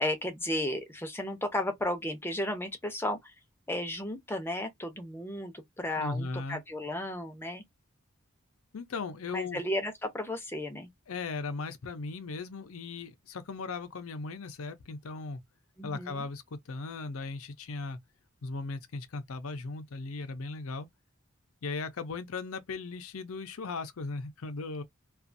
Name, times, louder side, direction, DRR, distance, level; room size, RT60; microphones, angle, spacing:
voice 1, 0.0-3.3 3.7-7.6 9.3-10.9 15.8-16.2, left 1 dB, 10° left, 0.6 m, -34 dB
voice 2, 6.0-6.6 8.7-9.6 11.1-15.4 15.8-18.0 18.4-20.9 21.6-24.8, left 3 dB, 85° left, 0.6 m, -37 dB
2.5 x 2.4 x 2.5 m
head